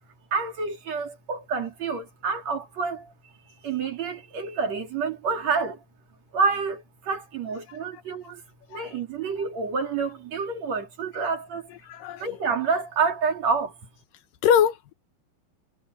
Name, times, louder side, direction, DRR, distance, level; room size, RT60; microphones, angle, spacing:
voice 1, 0.3-3.1 3.6-5.8 6.3-8.4 8.7-11.7 12.2-13.7, right 5 dB, 50° right, 3.7 m, -28 dB
voice 2, 11.9-12.2 14.4-14.9, left 8 dB, 75° left, 2.4 m, -22 dB
omnidirectional pair, 4.3 m